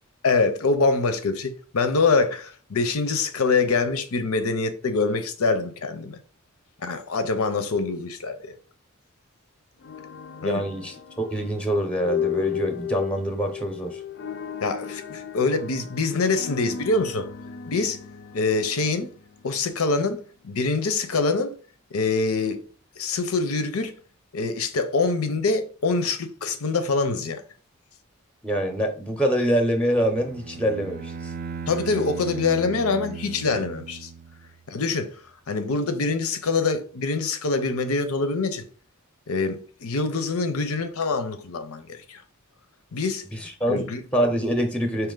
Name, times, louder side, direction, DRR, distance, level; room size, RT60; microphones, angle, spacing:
voice 1, 0.2-6.2 6.8-8.5 10.4-10.6 14.6-17.3 17.7-18.0 18.3-19.1 19.4-21.5 21.9-22.6 23.0-23.9 24.3-27.4 31.7-34.1 34.7-35.2 35.5-38.7 39.3-42.2 42.9-43.3 43.7-44.0, left 3 dB, 90° left, 0.7 m, -25 dB
sound 1, 9.8-19.9, left 9 dB, 55° left, 0.4 m, -35 dB
voice 2, 10.4-14.0 28.4-31.3 43.3-43.9 44.1-45.1, equal, 5° left, 0.6 m, -25 dB
Bowed string instrument, 29.9-34.7, right 6 dB, 45° right, 0.4 m, -37 dB
4.5 x 2.9 x 3.8 m
head